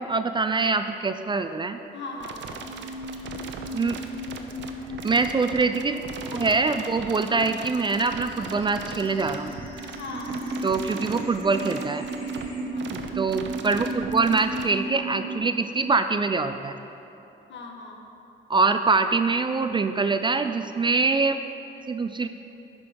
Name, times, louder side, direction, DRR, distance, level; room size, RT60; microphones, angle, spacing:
voice 1, 0.0-1.8 3.7-4.0 5.0-6.0 6.3-9.5 10.6-12.0 12.9-16.8 18.5-21.4 21.9-22.3, right 4 dB, 25° right, 9 dB, 0.3 m, -24 dB
voice 2, 1.9-2.9 10.0-10.4 12.7-13.2 17.5-18.0, left 3 dB, 65° left, 1 dB, 1.3 m, -39 dB
sound 1, 2.2-14.6, right 6 dB, 65° right, 0.7 m, -39 dB
sound 2, 2.6-12.6, left 2 dB, 25° left, 1.7 m, -39 dB
sound 3, 10.1-15.4, right 3 dB, 50° right, 1.3 m, -33 dB
11.0 x 5.3 x 5.2 m, 3.0 s
cardioid pair, 90°, 20 cm